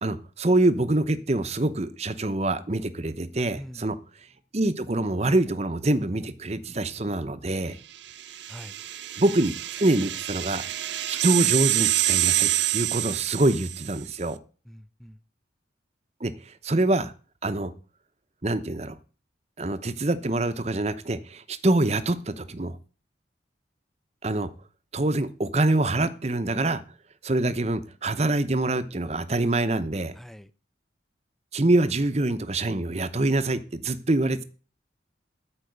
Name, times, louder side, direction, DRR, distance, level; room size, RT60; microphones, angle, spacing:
voice 1, 0.0-4.0 4.5-7.8 9.2-9.5 9.8-10.7 11.1-14.4 16.2-17.1 17.4-17.7 18.4-19.0 19.6-22.8 24.2-24.5 24.9-26.8 27.2-30.1 31.5-34.4, right 2 dB, 35° right, 11 dB, 0.8 m, -25 dB
voice 2, 3.6-3.9 8.5-8.7 14.7-15.2 30.2-30.5, equal, ahead, 13 dB, 0.5 m, -44 dB
sound 1, 8.1-14.0, right 15 dB, 70° right, 0.6 m, -27 dB
13.5 x 5.0 x 8.0 m, 0.38 s
head